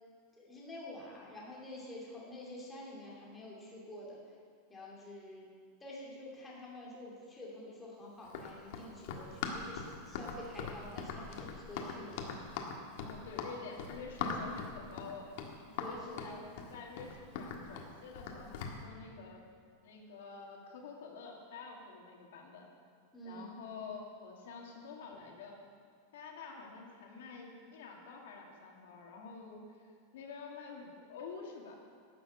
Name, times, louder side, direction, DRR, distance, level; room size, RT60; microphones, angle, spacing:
voice 1, 0.4-4.2 4.7-5.5 5.8-12.3 15.8-16.4 23.1-23.5, left 1 dB, 10° left, -5 dB, 2.5 m, -48 dB
Run, 8.2-18.8, left 5 dB, 55° left, 1.5 m, -41 dB
voice 2, 13.0-15.3 15.8-19.4 19.8-22.7 23.2-25.5 26.1-31.8, left 5 dB, 85° left, 0 dB, 2.3 m, -48 dB
12.5 x 6.9 x 8.3 m, 2.2 s
supercardioid pair, 170°, 0 cm